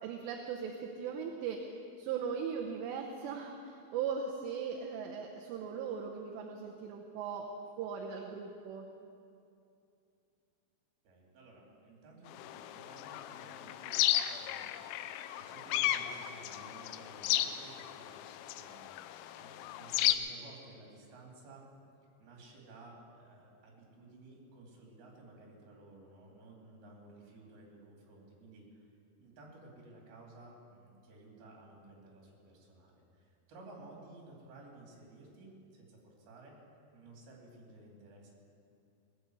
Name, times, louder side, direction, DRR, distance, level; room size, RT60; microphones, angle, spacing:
voice 1, 0.0-7.5 7.8-8.9, right 6 dB, 80° right, 0 dB, 3.0 m, -39 dB
voice 2, 11.0-21.6 22.2-28.9 29.2-36.6 36.9-38.3, right 2 dB, 60° right, -2 dB, 4.4 m, -55 dB
sound 1, 12.3-20.2, left 13 dB, 85° left, 2.9 m, -34 dB
19.5 x 8.3 x 7.8 m, 2.6 s
omnidirectional pair, 5.2 m